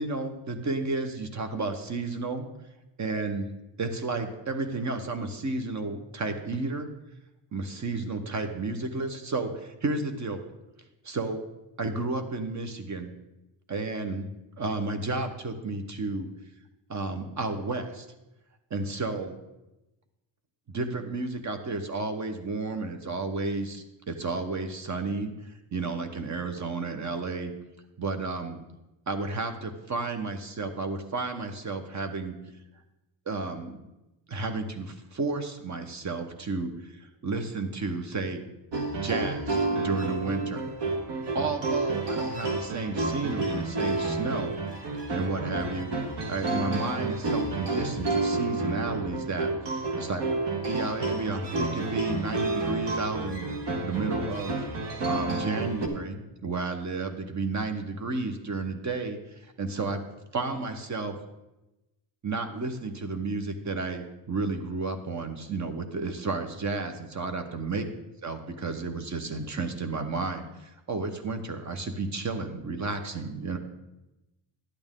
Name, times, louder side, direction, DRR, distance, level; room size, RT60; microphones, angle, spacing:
voice 1, 0.0-2.5 3.0-3.5 3.8-6.9 7.5-10.4 11.0-11.4 11.8-13.1 13.7-14.3 14.6-16.3 16.9-18.1 18.7-19.4 20.7-27.5 28.0-28.6 29.1-32.4 33.3-33.8 34.3-38.5 39.0-40.6 41.3-44.6 45.1-45.9 46.3-50.2 50.6-53.5 53.8-54.6 55.0-59.2 59.6-60.0 60.3-61.2 62.2-67.9 68.2-73.6, right 3 dB, 35° right, 7 dB, 1.1 m, -32 dB
sound 1, 38.7-55.9, right 2 dB, 55° right, 1.6 m, -30 dB
11.5 x 8.7 x 3.7 m, 0.98 s
cardioid pair, 100°, 49 cm